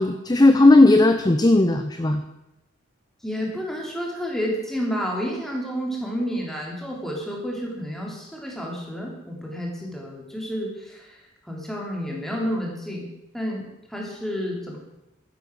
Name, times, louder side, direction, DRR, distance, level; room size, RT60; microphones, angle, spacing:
voice 1, 0.0-2.2, left 2 dB, 20° left, 8 dB, 0.6 m, -16 dB
voice 2, 3.2-11.2 11.4-13.1 13.3-13.6 13.9-14.8, equal, ahead, -2 dB, 3.2 m, -30 dB
12.0 x 10.5 x 6.3 m, 0.92 s
head